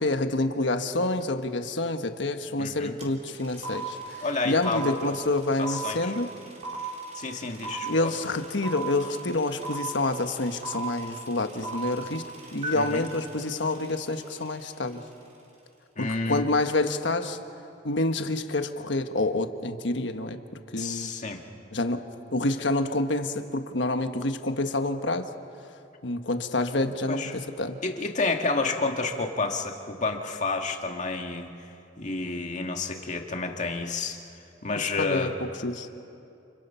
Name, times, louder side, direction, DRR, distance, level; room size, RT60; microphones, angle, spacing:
voice 1, 0.0-4.0 4.4-6.3 7.9-12.2 12.5-15.0 16.0-17.4 17.8-20.4 20.7-21.1 21.7-22.0 22.3-25.2 26.0-27.8 34.8-35.3 35.6-35.9, left 2 dB, 75° left, 7 dB, 1.4 m, -27 dB
voice 2, 2.6-3.0 4.2-4.9 5.6-6.1 7.1-8.1 12.7-13.1 16.0-16.5 20.8-21.4 27.1-27.3 27.8-31.5 32.0-34.2 34.6-35.4, left 3 dB, 40° left, 3 dB, 1.9 m, -30 dB
sound 1, 3.0-3.1 3.3-14.5, right 3 dB, 40° right, 4.2 m, -37 dB
29.5 x 29.0 x 5.7 m, 2.7 s
head